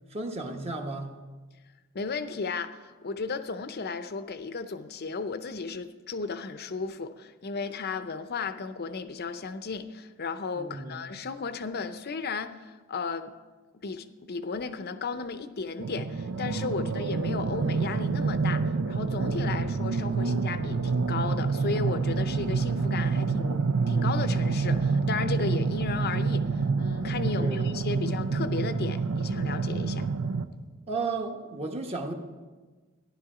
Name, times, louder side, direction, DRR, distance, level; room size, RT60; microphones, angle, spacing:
voice 1, 0.1-1.2 10.5-11.1 16.8-17.0 27.3-28.0 30.9-32.1, right 3 dB, 30° right, 3 dB, 1.1 m, -34 dB
voice 2, 1.9-13.3 13.8-30.1, left 4 dB, 45° left, 11 dB, 0.6 m, -34 dB
sound 1, 15.8-30.5, right 4 dB, 85° right, 0.6 m, -27 dB
14.5 x 11.0 x 4.9 m, 1.4 s
head